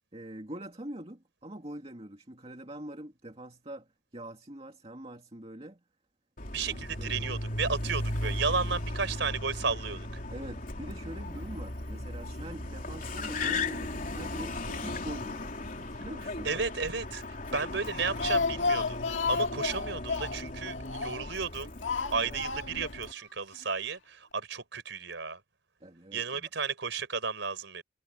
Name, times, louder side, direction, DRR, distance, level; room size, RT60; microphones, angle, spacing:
voice 1, 0.1-5.8 6.7-7.4 10.3-16.5 22.1-22.4 25.8-26.5, right 1 dB, 30° right, 2.2 m, -44 dB
Car, 6.4-23.1, left 2 dB, 45° left, 3.6 m, -37 dB
voice 2, 6.5-10.2 16.4-17.2 17.5-21.7 22.1-25.4 26.1-27.8, right 5 dB, 75° right, 4.6 m, -33 dB
Speech, 17.9-21.4 21.8-23.0 23.2-23.3 23.6-23.7, left 4 dB, 90° left, 1.8 m, -32 dB
head